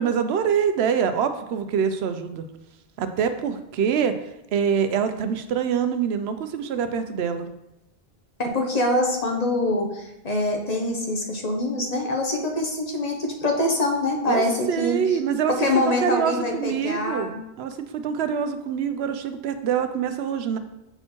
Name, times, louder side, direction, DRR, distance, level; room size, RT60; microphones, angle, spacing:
voice 1, 0.0-2.5 3.0-4.2 4.5-7.5 14.3-15.5 15.9-20.6, right 7 dB, 85° right, 9 dB, 0.8 m, -25 dB
voice 2, 8.4-15.0 15.5-17.4, left 1 dB, 45° left, 2 dB, 0.9 m, -24 dB
7.7 x 4.2 x 3.0 m, 0.89 s
omnidirectional pair, 1.0 m